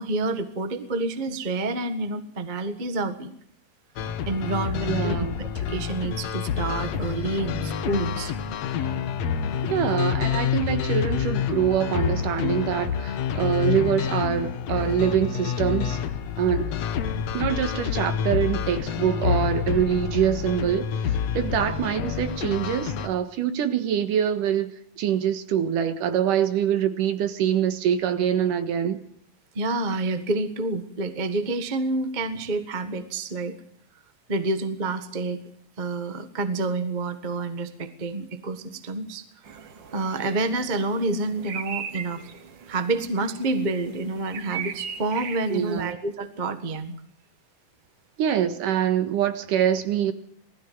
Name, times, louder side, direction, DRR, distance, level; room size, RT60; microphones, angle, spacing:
voice 1, 0.0-3.3 4.3-8.3 29.5-33.5 34.3-35.4 35.8-39.2 39.5-39.6 39.9-42.2 42.7-47.0, right 2 dB, 40° right, 0.6 m, -28 dB
sound 1, 4.0-23.1, left 8 dB, 60° left, 2.1 m, -28 dB
voice 2, 4.9-5.3 9.7-16.0 16.4-16.8 17.3-21.0 21.3-29.0 45.5-45.9 48.2-50.1, right 9 dB, 80° right, 3.1 m, -24 dB
sound 2, 39.4-45.9, right 7 dB, 55° right, 1.2 m, -39 dB
20.0 x 15.0 x 9.4 m
omnidirectional pair, 3.8 m